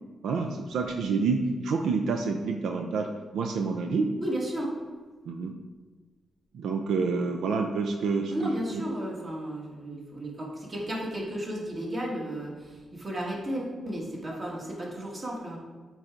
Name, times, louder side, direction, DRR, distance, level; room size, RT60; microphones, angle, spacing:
voice 1, 0.2-3.1 3.3-4.1 5.3-5.5 6.5-8.8, right 4 dB, 90° right, 4 dB, 0.5 m, -28 dB
voice 2, 4.2-4.8 8.3-15.6, right 1 dB, 40° right, -3 dB, 2.0 m, -34 dB
8.1 x 4.7 x 3.8 m, 1.4 s
cardioid pair, 90°, 0 cm